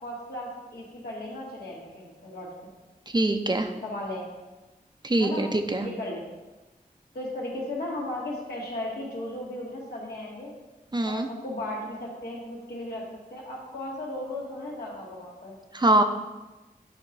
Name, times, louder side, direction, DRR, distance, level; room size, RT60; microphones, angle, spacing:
voice 1, 0.0-2.7 3.8-4.3 5.2-5.5 5.8-6.3 7.1-10.5 11.0-15.6, left 1 dB, 85° left, -3 dB, 1.8 m, -36 dB
voice 2, 3.1-3.7 5.0-5.9 10.9-11.3 15.7-16.0, right 1 dB, 30° right, 6 dB, 0.7 m, -23 dB
8.7 x 2.9 x 5.3 m, 1.1 s
cardioid pair, 50°, 16 cm